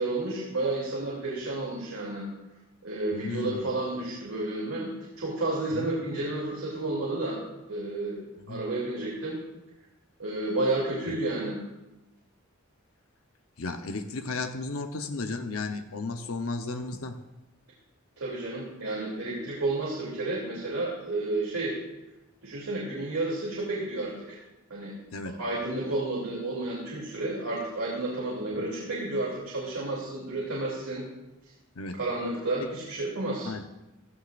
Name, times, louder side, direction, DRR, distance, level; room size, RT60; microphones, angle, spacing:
voice 1, 0.0-2.3 2.8-4.9 5.2-7.4 7.7-9.4 10.2-11.6 18.2-21.8 22.4-24.4 24.7-24.9 25.4-31.0 32.0-33.5, right 2 dB, 90° right, -5 dB, 3.0 m, -31 dB
voice 2, 3.1-3.7 5.7-5.9 8.4-8.6 11.1-11.2 13.6-17.1 25.1-25.3 31.8-32.0 33.4-33.6, left 3 dB, 75° left, 6 dB, 0.9 m, -34 dB
15.5 x 15.0 x 2.5 m, 0.97 s
head